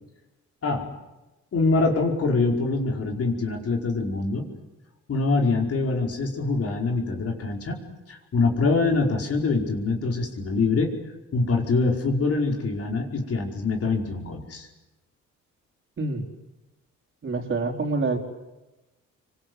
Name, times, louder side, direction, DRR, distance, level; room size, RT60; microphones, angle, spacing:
voice 1, 1.5-4.5 5.1-7.8 8.1-10.9 11.3-14.7, left 3 dB, 50° left, 1 dB, 5.1 m, -24 dB
voice 2, 17.2-18.2, right 3 dB, 40° right, 2 dB, 4.7 m, -26 dB
27.5 x 24.5 x 8.1 m, 1.1 s
cardioid pair, 90°, 30 cm